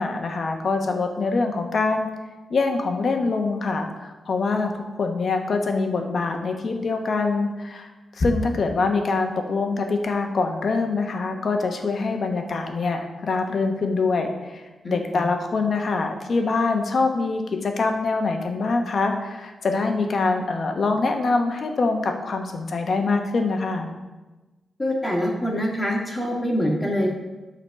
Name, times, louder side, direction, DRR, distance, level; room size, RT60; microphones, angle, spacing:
voice 1, 0.0-2.1 2.5-23.9, left 3 dB, 50° left, 4 dB, 1.1 m, -24 dB
voice 2, 14.9-15.2 24.8-27.1, equal, 15° left, -1 dB, 1.7 m, -25 dB
9.9 x 4.1 x 6.4 m, 1.2 s
wide cardioid pair, 135°, 0 cm